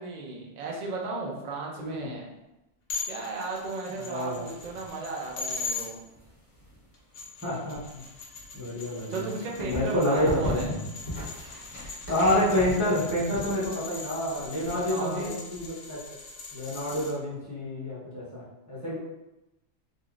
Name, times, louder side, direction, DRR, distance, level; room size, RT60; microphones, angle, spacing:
voice 1, 0.0-2.3 3.1-6.0 9.1-10.8 14.7-15.4, right 3 dB, 50° right, -1 dB, 0.5 m, -35 dB
voice 2, 1.8-2.1 4.0-4.4 7.4-7.8 8.5-9.3 9.6-10.7 12.1-16.0 16.5-19.0, left 1 dB, 15° right, -10 dB, 0.7 m, -28 dB
sound 1, 2.9-5.9 6.9-17.1, left 4 dB, 60° left, 0.8 m, -40 dB
sound 2, 4.2-5.7 6.0-15.7, left 1 dB, 90° left, 1.3 m, -38 dB
3.5 x 2.5 x 2.4 m, 0.96 s
omnidirectional pair, 1.2 m